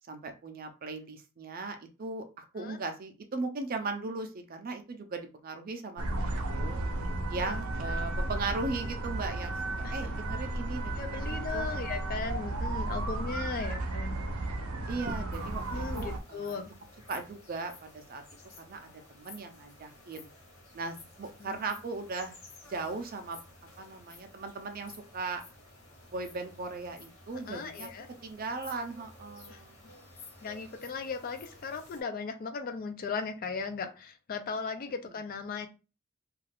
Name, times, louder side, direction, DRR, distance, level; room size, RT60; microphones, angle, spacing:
voice 1, 0.1-6.8 7.3-9.6 9.9-11.7 14.9-16.6 17.1-18.2 18.6-20.3 20.7-22.4 22.7-23.4 23.8-25.4 26.1-27.9 28.2-29.7 35.0-35.1, right 3 dB, 40° right, 6 dB, 0.4 m, -38 dB
sound 1, 6.0-16.2, right 2 dB, 90° right, 0.6 m, -34 dB
voice 2, 10.9-14.2 15.7-16.7 21.4-21.7 27.5-28.1 29.5-29.6 30.4-35.7, left 5 dB, 40° left, 7 dB, 0.4 m, -37 dB
sound 2, 15.3-32.0, left 2 dB, 75° left, 1.1 m, -53 dB
2.4 x 2.3 x 3.3 m, 0.31 s
head